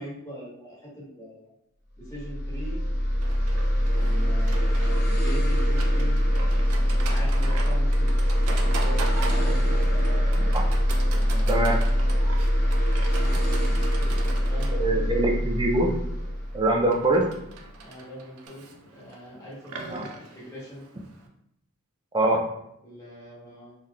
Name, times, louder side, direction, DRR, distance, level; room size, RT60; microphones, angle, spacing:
voice 1, 0.0-1.5 2.0-2.8 3.9-6.2 6.9-9.8 11.1-11.8 13.2-15.1 17.8-20.9 22.8-23.7, equal, 15° left, -7 dB, 1.2 m, -41 dB
sound 1, 2.0-17.5, equal, 45° left, 0.7 m, -23 dB
Livestock farm animals working animals, 3.2-21.3, right 3 dB, 80° right, 0.5 m, -40 dB
voice 2, 11.5-11.8 14.7-15.9 16.5-17.3 19.9-20.1 22.1-22.5, right 2 dB, 20° right, 2 dB, 0.4 m, -23 dB
3.5 x 2.8 x 2.4 m, 0.77 s
head